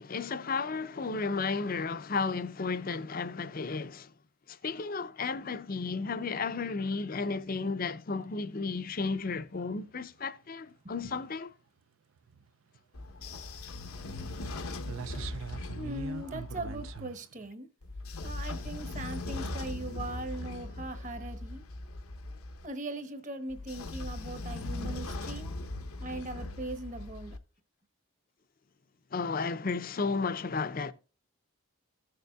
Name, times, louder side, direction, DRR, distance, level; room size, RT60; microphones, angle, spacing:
voice 1, 0.0-4.1 4.5-11.5 29.1-30.9, left 4 dB, 40° left, 0.5 m, -33 dB
sound 1, 8.9-9.4 9.8-10.1 10.7-11.3 12.2-12.5 12.7-12.8 13.1-13.2 13.4-13.7 14.3-14.5 14.8-17.5, right 6 dB, 70° right, 0.4 m, -43 dB
Train / Sliding door, 12.9-17.0 17.8-22.7 23.5-27.4, left 2 dB, 85° left, 0.9 m, -39 dB
voice 2, 15.7-17.7 18.2-21.6 22.6-25.5 26.0-27.4, right 1 dB, 35° right, 1.0 m, -40 dB
15.5 x 6.7 x 2.3 m
head